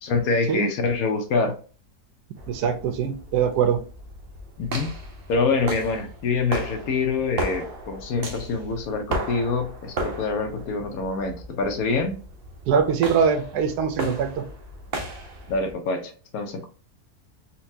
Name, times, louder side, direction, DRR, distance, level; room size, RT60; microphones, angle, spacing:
voice 1, 0.0-1.5 4.6-4.9 5.3-12.2 15.5-16.7, left 4 dB, 70° left, 5 dB, 1.1 m, -25 dB
sound 1, 2.4-15.7, right 2 dB, 60° right, 0.6 m, -35 dB
voice 2, 2.5-3.8 12.7-14.4, right 7 dB, 85° right, 8 dB, 1.2 m, -22 dB
4.2 x 2.2 x 2.6 m, 0.38 s
omnidirectional pair, 1.7 m